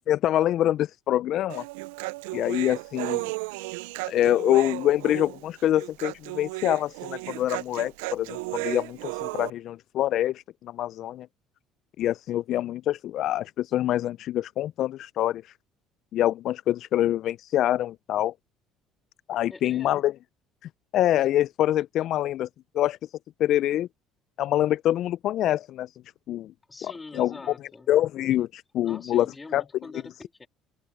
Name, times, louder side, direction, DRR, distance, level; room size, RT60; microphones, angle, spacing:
voice 1, 0.1-1.6 2.3-3.3 4.1-11.3 12.0-15.5 16.1-18.3 19.3-20.1 20.9-22.5 22.7-23.0 23.4-23.9 24.4-25.9 26.3-26.5 26.8-27.3 27.9-29.3 29.5-29.6, left 13 dB, 60° left, 0.3 m, -25 dB
Human voice, 1.5-9.5, right 26 dB, 85° right, 0.3 m, -34 dB
voice 2, 19.5-20.0 26.7-27.9 28.8-30.5, left 3 dB, 20° left, 2.9 m, -44 dB
open air
supercardioid pair, 75°, 0 cm